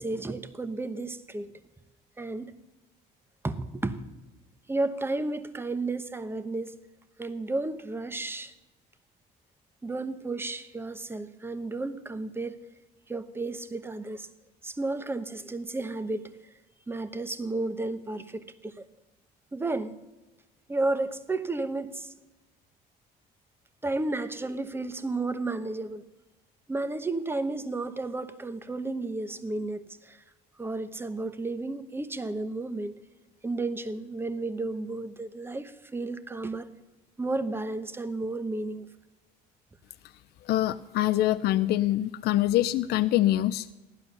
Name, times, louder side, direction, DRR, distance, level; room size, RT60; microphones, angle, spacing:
voice 1, 0.0-1.6 2.2-2.5 3.4-4.0 4.7-6.7 7.2-8.5 9.8-12.6 13.1-14.3 14.6-16.3 16.9-18.8 19.5-20.0 20.7-22.1 23.8-26.0 26.7-30.2 30.6-33.0 33.4-36.7 37.2-38.9, right 2 dB, 15° right, 11 dB, 1.0 m, -32 dB
voice 2, 40.4-43.7, left 14 dB, 70° left, 13 dB, 0.5 m, -24 dB
15.5 x 11.5 x 6.8 m, 1.1 s
cardioid pair, 110°, 17 cm